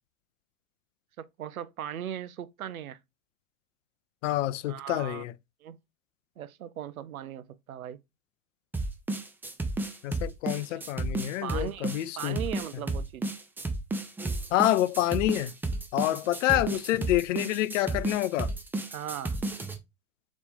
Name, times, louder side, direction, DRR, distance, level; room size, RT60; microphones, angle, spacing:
voice 1, 1.2-3.0 4.7-5.2 5.6-5.8 6.4-8.0 10.7-10.9 11.4-11.9 12.2-13.3 16.1-16.6 18.9-19.4, right 10 dB, 90° right, 0.5 m, -38 dB
voice 2, 4.2-5.3 10.0-12.4 14.5-15.5 15.9-18.5, left 15 dB, 65° left, 0.5 m, -27 dB
sound 1, 8.7-19.8, right 2 dB, 5° right, 0.4 m, -32 dB
4.1 x 3.0 x 3.7 m
hypercardioid pair, 100°, 41 cm